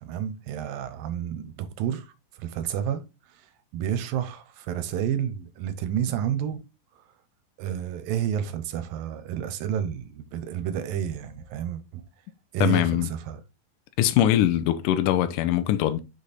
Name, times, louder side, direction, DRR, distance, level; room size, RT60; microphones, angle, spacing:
voice 1, 0.0-3.0 3.4-3.5 3.7-6.6 7.6-12.0 12.5-13.4, right 9 dB, 75° right, 2.5 m, -30 dB
voice 2, 12.6-13.1 14.0-16.0, left 12 dB, 75° left, 2.0 m, -22 dB
6.1 x 5.3 x 4.1 m
omnidirectional pair, 4.2 m